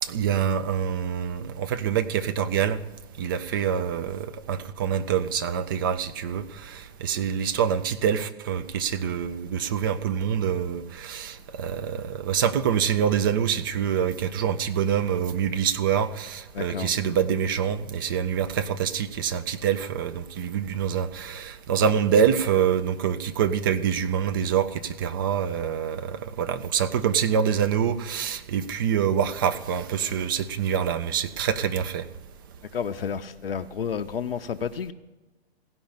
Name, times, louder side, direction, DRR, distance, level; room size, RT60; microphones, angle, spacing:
voice 1, 0.0-2.8 3.2-32.1, right 8 dB, 20° right, 0.4 m, -26 dB
voice 2, 16.5-16.9 32.7-34.9, left 7 dB, 60° left, 0.6 m, -31 dB
16.0 x 5.4 x 8.3 m
figure-of-eight pair, 115°, 32 cm